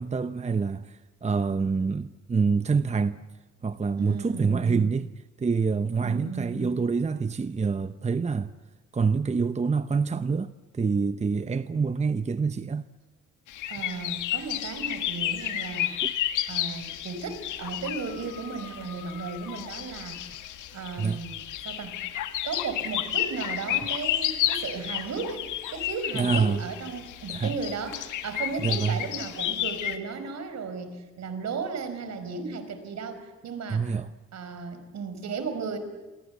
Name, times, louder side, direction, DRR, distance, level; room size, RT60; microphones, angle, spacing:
voice 1, 0.0-3.2 3.6-5.1 5.4-8.5 8.9-12.9 16.0-16.1 21.0-21.2 26.1-26.6 27.3-27.5 28.6-29.0 33.7-34.1, right 5 dB, 20° right, 0.8 m, -26 dB
voice 2, 4.0-4.9 6.0-6.6 13.7-20.4 20.7-22.0 22.4-25.4 25.7-33.9 34.3-35.8, right 4 dB, 60° right, 5.1 m, -35 dB
sound 1, 13.5-30.0, left 12 dB, 90° left, 1.9 m, -32 dB
29.0 x 24.0 x 8.2 m
cardioid pair, 90°, 30 cm